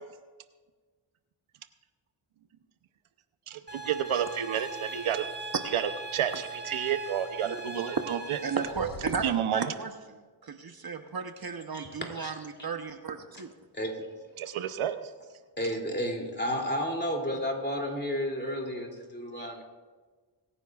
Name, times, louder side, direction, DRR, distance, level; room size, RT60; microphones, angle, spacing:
voice 1, 3.5-5.2 5.7-8.4 9.2-9.7 14.4-15.0, right 9 dB, 80° right, 10 dB, 0.8 m, -30 dB
sound 1, 3.7-8.7, right 2 dB, 20° right, 2.2 m, -40 dB
voice 2, 8.4-13.5, right 5 dB, 45° right, 7 dB, 0.9 m, -35 dB
sound 2, 8.6-9.5, left 1 dB, 55° left, 2.8 m, -44 dB
voice 3, 11.7-12.5 13.3-13.4 13.7-14.1 15.6-19.6, equal, 20° left, 1 dB, 2.8 m, -32 dB
23.5 x 9.9 x 2.4 m, 1.4 s
cardioid pair, 60°, 49 cm